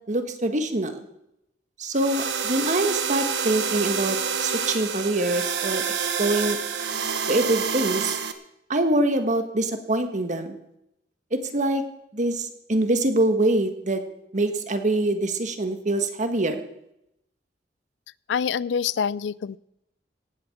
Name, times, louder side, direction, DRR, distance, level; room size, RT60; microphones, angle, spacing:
voice 1, 0.1-1.0 1.8-5.8 6.2-6.6 7.3-8.2 8.7-10.6 11.3-11.8 12.1-14.0 14.3-16.6, right 1 dB, 45° right, 8 dB, 1.5 m, -24 dB
sound 1, 1.9-8.3, right 6 dB, 75° right, 1.2 m, -28 dB
voice 2, 18.3-19.6, left 7 dB, 90° left, 21 dB, 0.4 m, -26 dB
17.5 x 7.8 x 7.2 m, 0.82 s
head